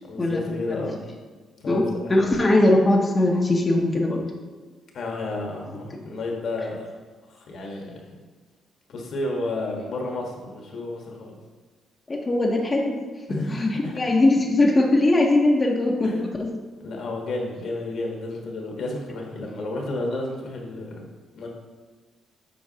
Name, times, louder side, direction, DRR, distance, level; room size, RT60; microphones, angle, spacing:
voice 1, 0.1-1.0 1.6-2.1 4.9-6.9 7.3-8.0 8.9-11.4 13.3-14.0 16.0-16.2 16.8-21.0 21.4-21.5, left 2 dB, 65° left, 0 dB, 1.2 m, -31 dB
voice 2, 1.7-4.2 5.9-6.0 12.1-13.0 13.4-16.3, left 2 dB, 25° left, -1 dB, 0.8 m, -20 dB
7.8 x 4.6 x 2.8 m, 1.4 s
cardioid pair, 90°, 0 cm